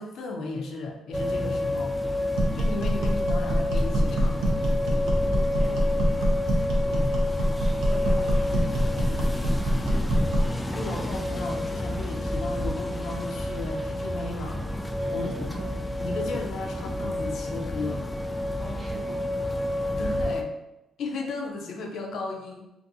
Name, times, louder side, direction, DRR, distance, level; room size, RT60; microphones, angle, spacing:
voice 1, 0.0-2.0 2.5-4.4 6.7-7.2 10.7-14.6 15.1-15.7 16.0-18.0 19.9-20.5 21.0-22.7, left 3 dB, 70° left, 1 dB, 0.5 m, -35 dB
sound 1, 1.1-20.4, left 1 dB, 10° left, 0.3 m, -29 dB
sound 2, 2.3-10.6, equal, 85° right, 0.6 m, -25 dB
voice 2, 4.8-6.2 7.5-9.3 15.0-15.4 18.6-19.3, right 1 dB, 20° right, -2 dB, 1.0 m, -43 dB
2.6 x 2.5 x 2.6 m, 0.91 s
cardioid pair, 90°, 0 cm